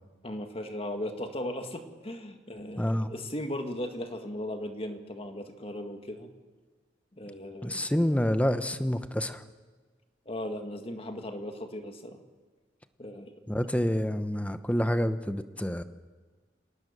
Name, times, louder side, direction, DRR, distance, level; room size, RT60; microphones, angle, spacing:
voice 1, 0.2-6.3 7.2-7.9 10.3-12.2 13.0-13.4, left 1 dB, 30° left, 6 dB, 1.8 m, -37 dB
voice 2, 2.8-3.1 7.6-9.4 13.5-15.8, equal, 5° left, 10 dB, 0.9 m, -28 dB
27.0 x 18.5 x 6.8 m, 1.4 s
head